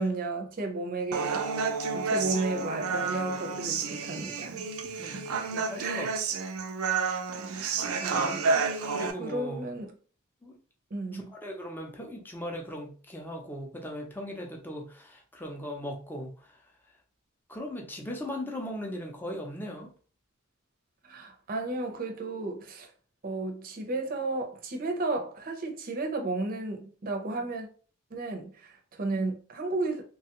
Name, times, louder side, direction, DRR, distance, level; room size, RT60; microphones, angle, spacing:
voice 1, 0.0-1.4 1.9-4.7 5.8-6.1 7.5-8.9 9.2-9.9 10.9-11.2 21.0-22.9 23.2-27.7 28.1-30.0, right 3 dB, 45° right, 0.6 m, -33 dB
Human voice, 1.1-9.1, right 4 dB, 85° right, 0.5 m, -30 dB
voice 2, 5.0-6.3 8.9-9.7 10.4-10.6 11.1-16.6 17.5-19.9, equal, 10° left, 0.6 m, -38 dB
3.1 x 2.3 x 2.9 m
head